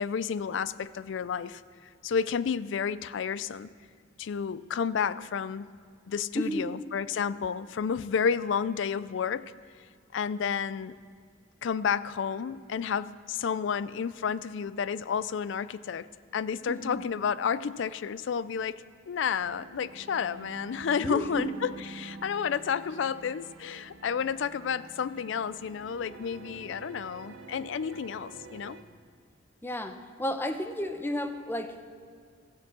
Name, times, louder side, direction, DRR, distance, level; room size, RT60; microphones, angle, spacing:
voice 1, 0.0-1.6 2.0-3.7 4.2-5.7 6.1-9.5 10.1-11.0 11.6-16.1 16.3-28.8, left 6 dB, 65° left, 17 dB, 0.4 m, -31 dB
voice 2, 6.4-6.7 16.7-17.0 21.0-21.5 29.6-31.8, equal, 10° left, 7 dB, 0.7 m, -32 dB
sound 1, 19.4-28.8, right 3 dB, 75° right, 1.1 m, -48 dB
15.0 x 7.2 x 7.5 m, 2.2 s
head